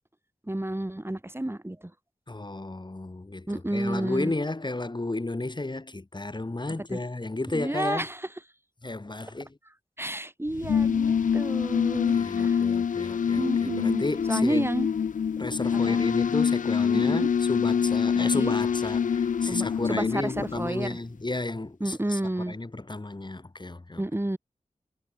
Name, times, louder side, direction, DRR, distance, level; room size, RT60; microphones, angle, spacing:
voice 1, 0.5-1.9 3.5-4.3 6.9-7.0 7.5-8.3 10.0-12.6 13.4-14.9 15.7-16.0 16.9-17.3 18.1-18.5 19.4-21.0 21.8-22.5 24.0-24.4, right 1 dB, 20° right, 4.5 m, -31 dB
voice 2, 2.3-8.1 8.8-9.6 12.1-14.6 15.4-22.2 22.5-24.0, left 2 dB, 35° left, 3.7 m, -33 dB
sound 1, 10.5-20.9, left 7 dB, 90° left, 0.4 m, -25 dB
wide cardioid pair, 65°, 13 cm